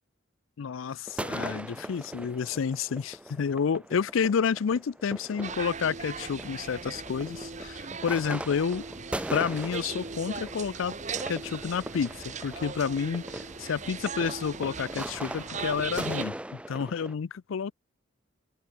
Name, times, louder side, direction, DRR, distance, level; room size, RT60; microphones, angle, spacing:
voice 1, 0.6-8.8 9.3-11.0 11.3-17.7, left 6 dB, 85° left, 0.4 m, -30 dB
sound 1, 1.1-17.1, right 1 dB, 5° right, 0.6 m, -40 dB
sound 2, 5.4-16.2, right 5 dB, 35° right, 1.3 m, -39 dB
open air
head